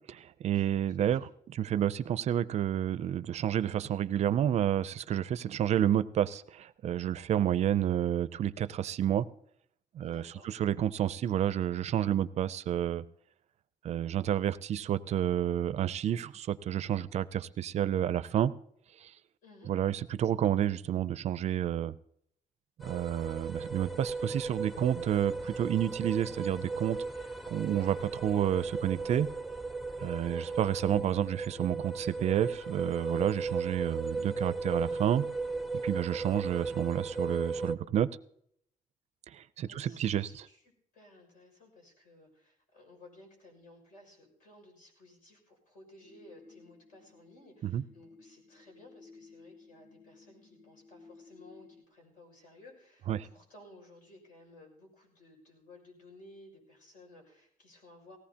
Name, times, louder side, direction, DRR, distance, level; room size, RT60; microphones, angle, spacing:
voice 1, 0.1-9.3 9.9-13.0 13.8-18.5 19.0-19.1 19.7-21.9 22.8-27.0 27.5-29.3 30.0-35.2 35.7-38.1 39.3-40.3 47.6-47.8 53.1-53.3, right 10 dB, 50° right, 16 dB, 0.4 m, -30 dB
voice 2, 10.0-10.5 19.4-19.7 30.3-30.5 39.6-58.2, left 1 dB, 75° left, 2 dB, 6.1 m, -56 dB
sound 1, 22.8-37.7, right 4 dB, ahead, 0.5 m, -36 dB
sound 2, 46.0-51.8, left 4 dB, 45° left, 2.3 m, -57 dB
18.5 x 16.5 x 2.9 m, 0.69 s
cardioid pair, 150°, 14 cm